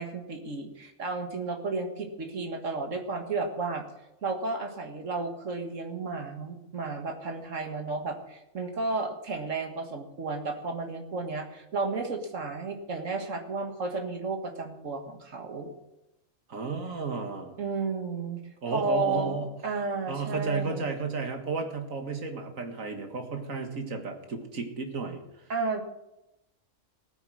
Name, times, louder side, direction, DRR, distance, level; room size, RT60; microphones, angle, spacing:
voice 1, 0.0-3.8 4.2-15.7 17.6-18.4 18.7-20.9 25.5-25.8, right 3 dB, 70° right, 5 dB, 2.0 m, -32 dB
voice 2, 16.5-17.6 18.6-19.5 20.1-25.2, right 4 dB, 90° right, 5 dB, 2.1 m, -33 dB
16.5 x 9.7 x 6.2 m, 0.91 s
omnidirectional pair, 1.4 m